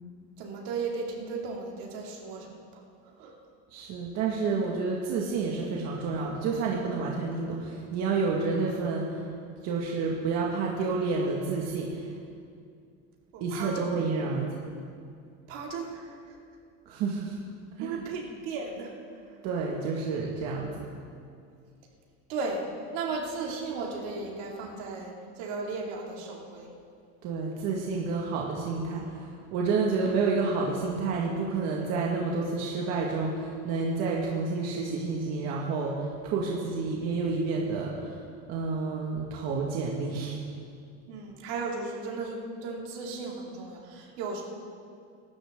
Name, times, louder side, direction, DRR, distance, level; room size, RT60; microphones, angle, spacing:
voice 1, 0.4-3.3 13.3-13.8 15.5-16.4 17.8-18.9 19.3-19.4 22.3-22.6 22.9-26.7 41.1-44.4, right 4 dB, 80° right, 0 dB, 2.7 m, -36 dB
voice 2, 3.7-9.3 9.6-12.1 13.4-14.5 16.9-17.4 17.8-18.0 19.4-20.9 27.2-29.2 29.5-38.2 38.5-40.4, right 4 dB, 60° right, -2 dB, 1.9 m, -29 dB
24.0 x 13.0 x 3.8 m, 2.3 s
cardioid pair, 155°, 29 cm